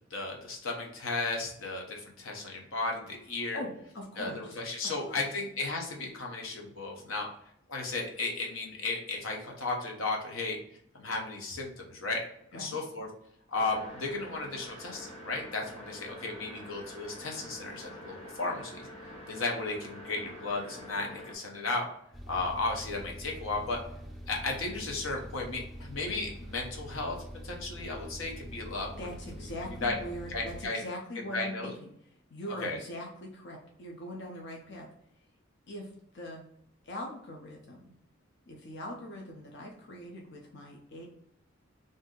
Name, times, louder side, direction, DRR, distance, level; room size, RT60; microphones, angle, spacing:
voice 1, 0.1-3.6 4.2-7.3 7.7-10.6 10.9-12.2 12.5-13.1 13.5-18.9 19.3-21.9 22.3-23.8 24.3-27.2 27.4-29.1 29.7-29.9 30.3-30.8 31.3-31.7 32.6-32.8, left 3 dB, 90° left, 1 dB, 0.8 m, -34 dB
voice 2, 3.5-4.6 5.0-5.2 12.5-12.8 29.0-31.9 32.3-34.9 35.7-35.9 36.1-36.4 36.8-37.8 38.5-41.0, left 1 dB, 60° left, 0 dB, 0.6 m, -41 dB
sound 1, 13.5-21.4, equal, 30° left, 1.0 m, -46 dB
sound 2, 22.1-30.7, equal, ahead, 0.3 m, -44 dB
2.6 x 2.6 x 3.7 m, 0.71 s
head